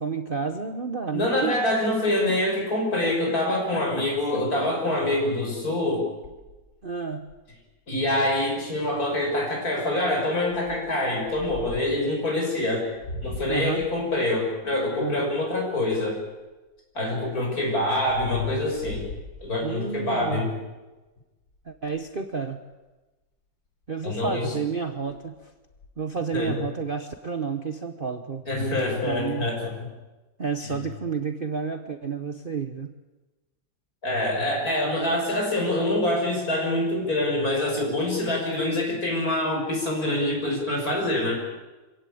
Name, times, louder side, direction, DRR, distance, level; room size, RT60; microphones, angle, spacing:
voice 1, 0.0-1.5 3.5-3.6 4.0-4.1 6.8-7.3 13.5-13.9 15.0-15.3 19.6-20.5 21.7-22.6 23.9-25.3 26.0-29.5 30.4-33.0, right 5 dB, 35° right, 7 dB, 1.1 m, -31 dB
voice 2, 1.1-6.1 7.9-12.9 13.2-16.2 16.9-19.1 19.4-20.6 24.0-24.6 26.3-26.5 28.5-29.9 30.6-30.8 34.0-41.4, left 1 dB, 55° left, 0 dB, 6.5 m, -25 dB
sound 1, 6.2-7.7 8.2-8.3 8.6-8.8 9.4-9.7 10.5-12.0 12.6-16.5 17.0-20.0 20.5-20.8 21.1-21.2 21.4-22.2 23.8-23.9 24.3-24.6 24.9-25.9, left 2 dB, 85° left, 4.2 m, -42 dB
25.5 x 16.5 x 8.6 m, 1.2 s
omnidirectional pair, 1.9 m